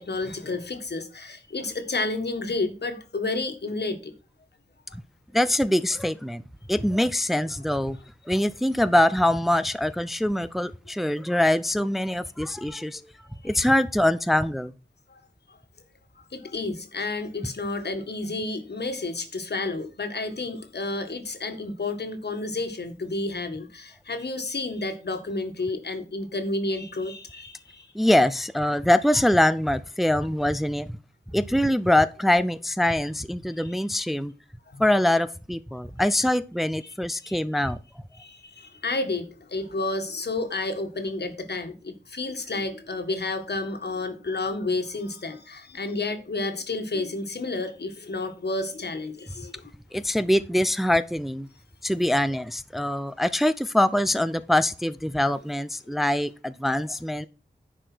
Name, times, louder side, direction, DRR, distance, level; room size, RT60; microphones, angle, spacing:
voice 1, 0.0-4.1 8.3-8.4 16.3-27.9 33.6-33.7 34.7-34.8 36.8-36.9 37.2-37.4 38.2-39.2 39.5-49.5, left 2 dB, 75° left, 1.8 m, -31 dB
voice 2, 5.3-6.4 6.7-8.0 8.3-13.0 13.4-14.7 27.9-30.9 31.3-34.3 34.8-37.8 49.9-51.5 51.8-57.3, left 1 dB, ahead, 0.5 m, -23 dB
10.0 x 4.9 x 6.2 m
wide cardioid pair, 60°, 18 cm